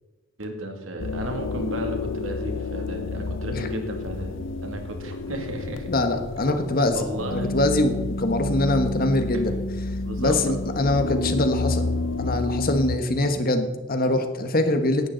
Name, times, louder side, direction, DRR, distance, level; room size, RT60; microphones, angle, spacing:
voice 1, 0.4-5.9 6.9-7.5 9.3-9.4 10.0-10.4, right 1 dB, 80° right, 3 dB, 2.4 m, -33 dB
sound 1, 1.0-13.0, left 2 dB, 65° left, 0.7 m, -30 dB
voice 2, 5.9-9.6 10.2-11.9 12.2-15.1, left 1 dB, 45° left, 7 dB, 1.3 m, -23 dB
17.0 x 11.5 x 4.0 m, 1.2 s
head